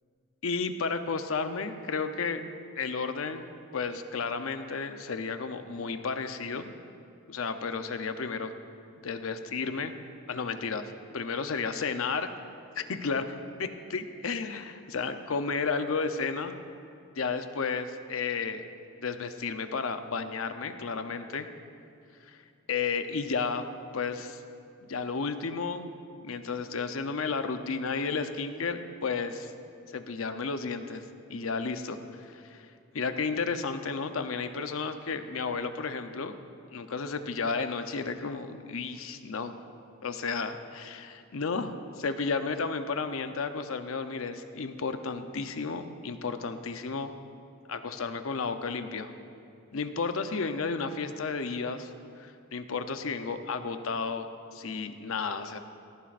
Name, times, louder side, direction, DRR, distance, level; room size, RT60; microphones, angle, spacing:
voice 1, 0.4-2.4 2.8-6.7 7.3-8.5 9.0-9.9 10.3-12.3 12.8-13.3 13.6-16.6 17.2-18.7 19.0-21.5 22.2-22.4 22.7-23.7 23.9-24.4 24.8-25.9 26.2-29.5 29.9-31.0 31.3-32.7 32.9-36.3 36.7-39.6 40.0-47.1 47.7-49.1 49.7-51.9 52.2-55.6, left 4 dB, 85° left, 8 dB, 0.7 m, -32 dB
17.5 x 14.0 x 2.5 m, 2.4 s
head